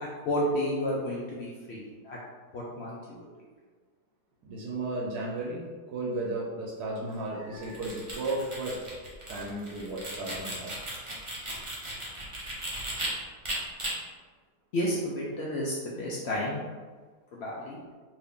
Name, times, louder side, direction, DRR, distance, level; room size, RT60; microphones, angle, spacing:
voice 1, 0.0-2.2 2.5-3.2 14.7-16.6 17.3-17.8, equal, 80° left, -5 dB, 0.5 m, -31 dB
voice 2, 4.4-8.9 9.3-10.7, right 2 dB, 80° right, -3 dB, 1.2 m, -34 dB
sound 1, 7.6-13.1 13.4-13.9, right 1 dB, 45° right, 0.4 m, -37 dB
2.9 x 2.6 x 3.5 m, 1.5 s
omnidirectional pair, 1.7 m